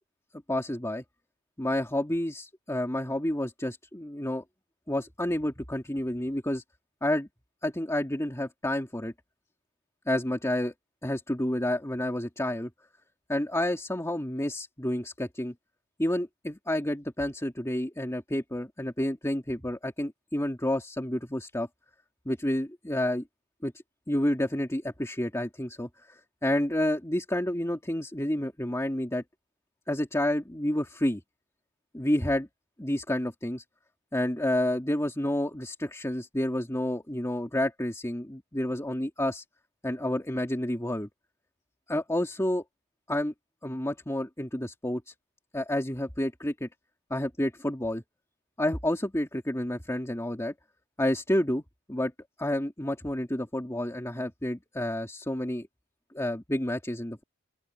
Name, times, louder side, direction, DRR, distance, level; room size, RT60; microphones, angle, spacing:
voice 1, 0.5-1.0 1.6-4.4 4.9-6.6 7.0-7.3 7.6-9.1 10.1-10.7 11.0-12.7 13.3-15.5 16.0-21.7 22.3-23.2 23.6-23.7 24.1-29.2 29.9-31.2 31.9-32.5 32.8-33.6 34.1-39.4 39.8-41.1 41.9-42.6 43.1-43.3 43.6-45.1 45.5-46.7 47.1-48.0 48.6-50.5 51.0-51.6 51.9-52.1 52.4-55.7 56.1-57.2, left 1 dB, 15° left, 2.5 m, -29 dB
open air
head